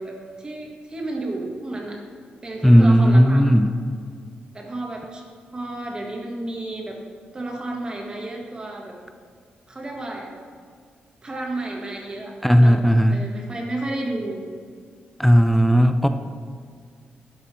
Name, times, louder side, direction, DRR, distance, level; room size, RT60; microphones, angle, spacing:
voice 1, 0.0-2.0 2.4-3.5 4.5-5.2 5.5-7.0 7.3-9.0 9.7-10.3 11.2-12.8 13.1-14.4, right 2 dB, 25° right, 0 dB, 1.6 m, -32 dB
voice 2, 2.6-3.7 12.4-13.2 15.2-16.1, equal, 5° left, 8 dB, 0.3 m, -15 dB
11.5 x 5.5 x 6.1 m, 2.1 s
wide cardioid pair, 145°, 3 cm